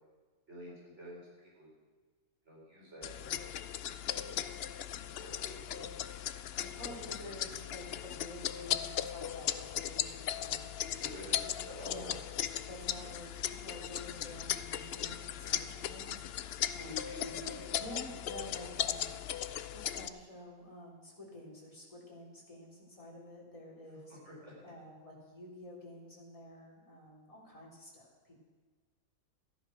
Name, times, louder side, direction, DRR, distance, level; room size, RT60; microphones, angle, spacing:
voice 1, 0.5-1.7 2.4-3.5 4.1-4.4 5.2-5.9 6.7-7.0 10.9-12.1 16.8-17.7 24.1-24.5, left 1 dB, 45° right, -5 dB, 4.7 m, -49 dB
sound 1, 3.0-20.1, left 10 dB, 75° left, 0.5 m, -38 dB
voice 2, 6.6-10.8 11.4-12.1 12.6-19.2 19.7-24.2 24.6-28.4, left 1 dB, 20° left, -3 dB, 3.3 m, -50 dB
13.5 x 11.0 x 6.2 m, 1.4 s
omnidirectional pair, 1.6 m